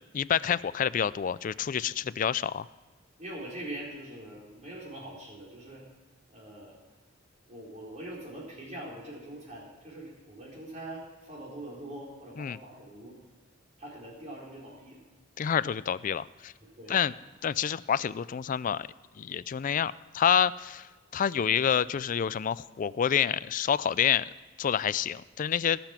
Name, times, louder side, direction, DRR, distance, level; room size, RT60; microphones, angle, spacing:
voice 1, 0.1-2.7 12.4-12.6 15.4-16.5 16.9-17.1 17.4-18.9 19.2-24.2 24.6-25.8, left 8 dB, 40° left, 18 dB, 0.3 m, -28 dB
voice 2, 3.2-5.8 6.3-6.8 7.5-13.2 13.8-15.0 16.6-17.0, right 1 dB, 35° right, -3 dB, 4.2 m, -43 dB
18.5 x 7.0 x 5.9 m, 1.3 s
head